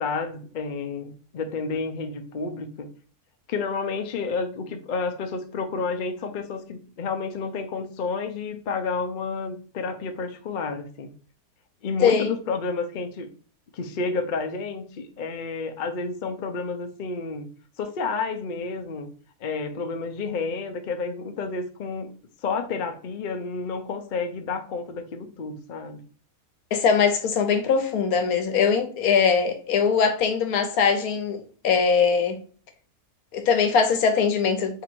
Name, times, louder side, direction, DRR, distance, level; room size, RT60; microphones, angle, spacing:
voice 1, 0.0-2.9 3.5-11.1 11.8-13.3 13.7-17.5 17.8-19.1 19.4-22.1 22.4-26.0, left 4 dB, 55° left, 0.5 m, -30 dB
voice 2, 12.0-12.3 26.7-32.4 33.3-34.8, left 6 dB, 75° left, 1.1 m, -21 dB
3.7 x 2.5 x 4.4 m
omnidirectional pair, 1.6 m